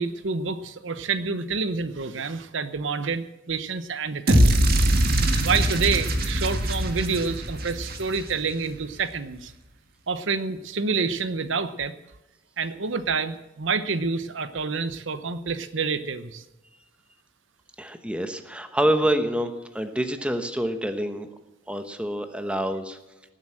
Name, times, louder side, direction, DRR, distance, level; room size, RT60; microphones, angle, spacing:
voice 1, 0.0-4.7 5.4-9.5 10.1-11.9 12.6-16.4, right 4 dB, 65° right, 12 dB, 0.9 m, -28 dB
sound 1, 4.3-8.5, right 1 dB, 50° right, 1.8 m, -22 dB
voice 2, 17.8-19.5 19.7-21.3 21.7-23.0, right 1 dB, 5° right, 8 dB, 1.1 m, -26 dB
18.0 x 8.0 x 7.5 m, 1.0 s
head